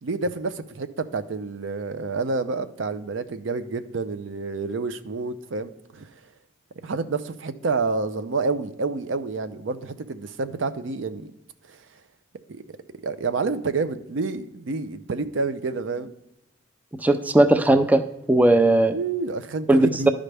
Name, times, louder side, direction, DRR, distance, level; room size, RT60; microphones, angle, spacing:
voice 1, 0.0-6.1 6.8-11.3 11.7-11.8 12.5-12.6 13.0-16.1 18.9-20.1, right 4 dB, 80° right, 11 dB, 0.5 m, -28 dB
voice 2, 17.0-18.0 18.3-18.9 19.7-20.1, right 2 dB, 10° right, 9 dB, 0.4 m, -17 dB
12.0 x 5.0 x 3.3 m, 0.86 s
head